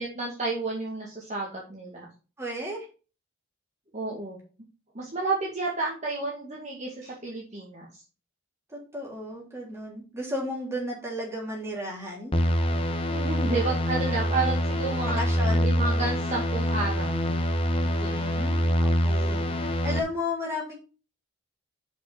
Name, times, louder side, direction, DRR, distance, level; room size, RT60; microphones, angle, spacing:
voice 1, 0.0-2.1 3.9-4.4 4.9-7.9 13.1-15.2 15.6-17.2 17.8-18.2, right 3 dB, 35° right, -4 dB, 2.1 m, -31 dB
voice 2, 2.4-2.9 8.7-12.3 15.0-15.7 18.0-20.7, left 1 dB, 15° right, -3 dB, 3.5 m, -34 dB
sound 1, 12.3-20.0, equal, 25° left, 1.0 m, -25 dB
6.7 x 5.5 x 5.4 m, 0.34 s
head